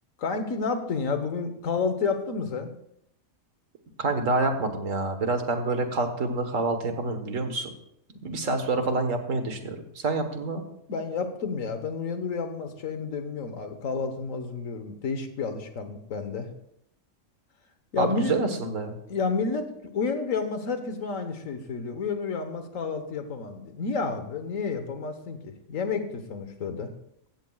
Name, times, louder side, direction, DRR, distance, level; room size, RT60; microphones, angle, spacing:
voice 1, 0.2-2.7 8.4-8.5 10.9-16.5 17.9-18.4 19.1-26.9, left 4 dB, 85° left, 8 dB, 1.6 m, -30 dB
voice 2, 4.0-7.7 8.2-10.6 18.0-19.0, right 3 dB, 75° right, 6 dB, 1.8 m, -27 dB
16.0 x 14.0 x 2.4 m, 0.76 s
omnidirectional pair, 1.4 m